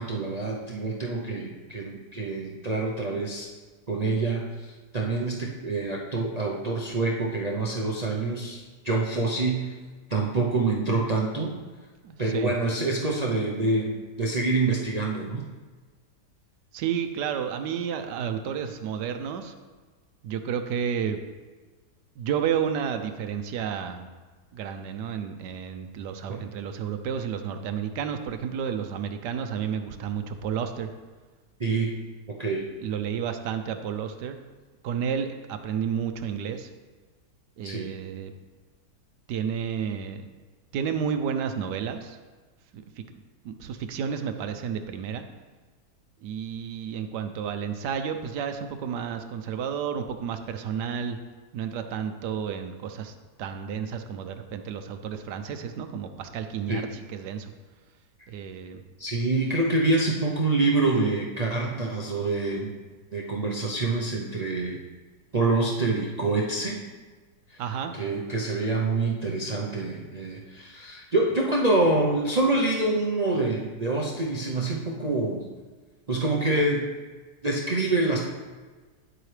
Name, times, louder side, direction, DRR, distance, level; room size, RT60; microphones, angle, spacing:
voice 1, 0.0-3.5 3.9-9.7 10.1-11.5 12.2-13.9 14.2-15.4 26.3-26.4 31.6-31.9 32.4-32.6 37.6-37.9 56.7-56.8 59.0-62.7 63.1-64.8 65.3-66.8 67.5-67.6 67.9-75.4 76.1-76.9 77.4-78.3, right 3 dB, 50° right, -3 dB, 0.4 m, -26 dB
voice 2, 12.0-12.6 16.7-19.5 20.2-21.2 22.2-24.1 24.5-30.9 32.8-34.4 34.8-36.7 37.6-38.3 39.3-40.2 40.7-42.2 42.7-43.0 43.4-45.3 46.2-51.2 51.5-57.5 58.3-58.8 67.6-67.9, right 7 dB, 85° right, 8 dB, 1.2 m, -31 dB
9.8 x 7.7 x 3.3 m, 1.4 s
omnidirectional pair, 1.8 m